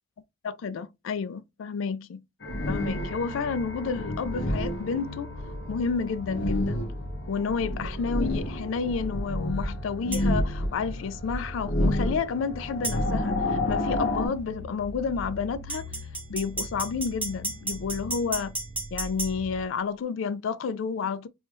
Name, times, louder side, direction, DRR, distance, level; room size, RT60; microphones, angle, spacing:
voice 1, 0.4-2.2 2.7-5.3 5.7-6.8 7.3-15.9 16.3-18.6 18.9-21.3, left 5 dB, 75° left, 0.3 m, -30 dB
sound 1, 2.4-14.3, left 1 dB, 55° left, 0.7 m, -30 dB
sound 2, 3.1-19.6, equal, 40° right, 0.3 m, -41 dB
sound 3, 10.1-10.3 12.8-13.0 15.7-19.3, right 2 dB, 5° right, 0.8 m, -33 dB
2.6 x 2.2 x 3.2 m
head